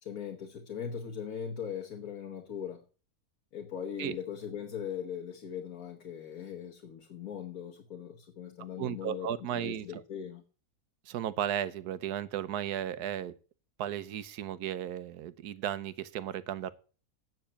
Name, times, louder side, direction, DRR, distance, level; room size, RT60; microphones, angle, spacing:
voice 1, 0.0-2.8 3.5-10.4, left 8 dB, 65° left, 1.7 m, -40 dB
voice 2, 8.8-10.0 11.1-13.3 13.8-16.7, right 10 dB, 80° right, 1.3 m, -35 dB
9.2 x 6.9 x 8.5 m
omnidirectional pair, 1.7 m